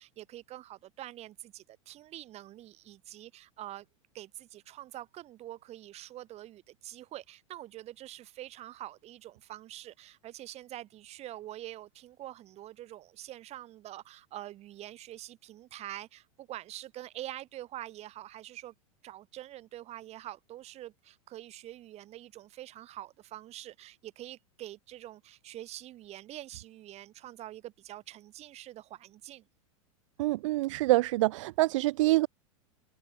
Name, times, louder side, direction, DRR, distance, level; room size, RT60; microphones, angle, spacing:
voice 1, 0.0-3.9 4.1-18.7 19.0-29.5, right 14 dB, 35° right, 3.9 m, -45 dB
voice 2, 30.2-32.3, right 19 dB, 60° right, 0.7 m, -26 dB
hypercardioid pair, 105°, 18 cm